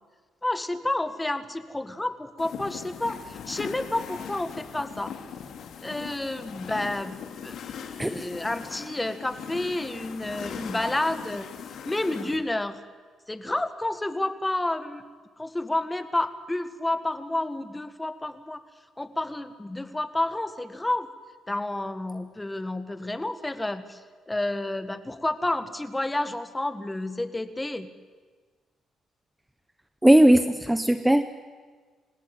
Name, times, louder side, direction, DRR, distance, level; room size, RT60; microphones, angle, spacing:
voice 1, 0.4-5.1 5.8-7.2 7.4-11.5 11.8-12.8 13.3-15.0 15.4-18.6 19.0-21.1 21.5-24.0 24.3-27.9, left 1 dB, 10° left, 11 dB, 1.7 m, -30 dB
sound 1, 2.4-12.4, left 7 dB, 70° left, 2.6 m, -39 dB
voice 2, 30.0-31.2, right 1 dB, 5° right, 10 dB, 1.0 m, -18 dB
27.0 x 16.5 x 8.9 m, 1.5 s
cardioid pair, 90°, 0 cm